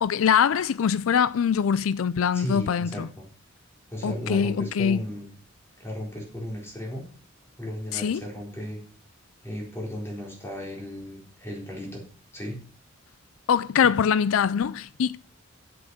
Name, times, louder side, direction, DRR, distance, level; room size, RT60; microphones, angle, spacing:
voice 1, 0.0-3.1 4.0-5.0 7.9-8.2 13.5-15.2, left 7 dB, 85° left, 0.4 m, -23 dB
voice 2, 2.3-3.2 3.9-5.3 5.8-7.0 7.6-8.8 9.4-12.0 12.3-12.6, equal, 10° left, 4.1 m, -35 dB
8.5 x 7.9 x 6.2 m
head